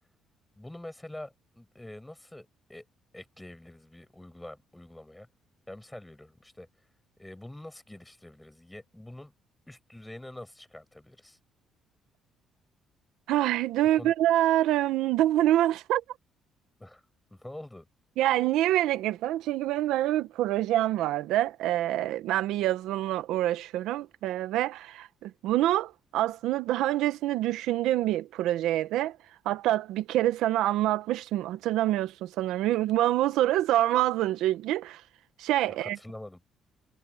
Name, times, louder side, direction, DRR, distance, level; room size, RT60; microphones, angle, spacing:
voice 1, 0.6-2.9 3.1-5.3 5.7-6.7 7.2-9.3 9.7-11.4 13.9-14.1 16.8-17.0 17.3-17.9 35.7-36.4, left 1 dB, 5° left, 7.4 m, -45 dB
voice 2, 13.3-16.0 18.2-29.2 29.4-35.0 35.4-36.0, right 14 dB, 90° right, 0.9 m, -26 dB
cardioid pair, 180°, 0 cm